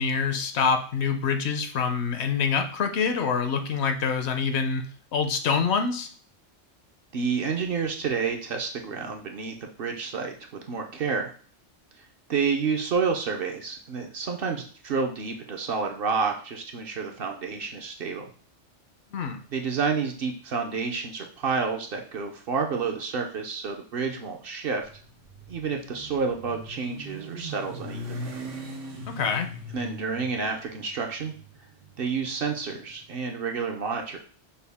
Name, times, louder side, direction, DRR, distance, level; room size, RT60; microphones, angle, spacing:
voice 1, 0.0-4.9 5.1-6.1 19.1-19.4 29.1-29.5, left 5 dB, 70° left, 7 dB, 0.8 m, -26 dB
voice 2, 7.1-11.3 12.3-18.2 19.5-24.8 25.5-28.3 29.7-31.3 32.0-34.2, right 5 dB, 60° right, 3 dB, 0.7 m, -29 dB
Motorcycle, 24.8-33.0, equal, 90° right, 1.2 m, -40 dB
5.4 x 2.3 x 3.4 m, 0.43 s
omnidirectional pair, 1.2 m